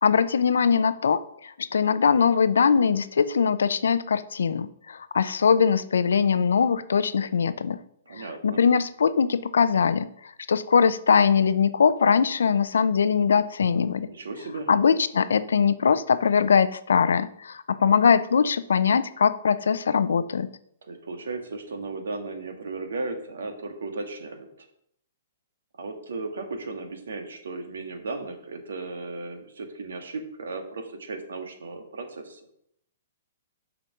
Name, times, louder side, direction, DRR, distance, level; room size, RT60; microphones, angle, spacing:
voice 1, 0.0-7.8 8.1-14.1 14.7-20.5, left 6 dB, 80° left, 0.5 m, -22 dB
voice 2, 8.1-8.6 13.9-14.7 20.8-24.5 25.8-32.4, right 3 dB, 80° right, 1.6 m, -35 dB
7.1 x 5.1 x 6.1 m
hypercardioid pair, 135°, 0 cm